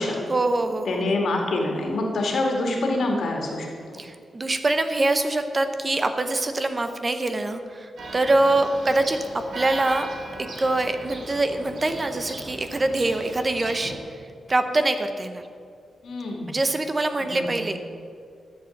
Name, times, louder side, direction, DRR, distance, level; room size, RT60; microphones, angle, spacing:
voice 1, 0.3-1.1 4.0-10.1 10.6-13.9 14.5-15.4 16.5-17.9, right 2 dB, 25° right, 8 dB, 0.8 m, -24 dB
voice 2, 0.9-3.7 16.0-16.6 17.4-17.6, left 2 dB, 70° left, 1 dB, 2.3 m, -25 dB
Church bell, 8.0-14.0, right 2 dB, 70° right, 2.3 m, -38 dB
12.5 x 7.7 x 7.1 m, 2.3 s
wide cardioid pair, 125°, 0 cm